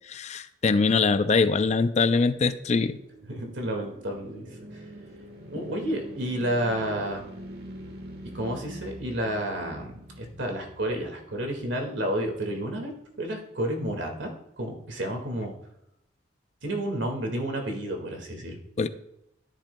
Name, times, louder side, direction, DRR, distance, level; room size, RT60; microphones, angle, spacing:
voice 1, 0.1-3.0 18.8-18.9, left 4 dB, 35° left, 11 dB, 0.4 m, -23 dB
sound 1, 2.3-11.5, right 1 dB, 60° right, 1.2 m, -44 dB
voice 2, 3.3-4.8 5.5-7.2 8.3-9.9 10.2-15.5 16.6-18.6, right 1 dB, 80° right, 3 dB, 1.9 m, -31 dB
11.5 x 10.5 x 2.2 m, 0.83 s
head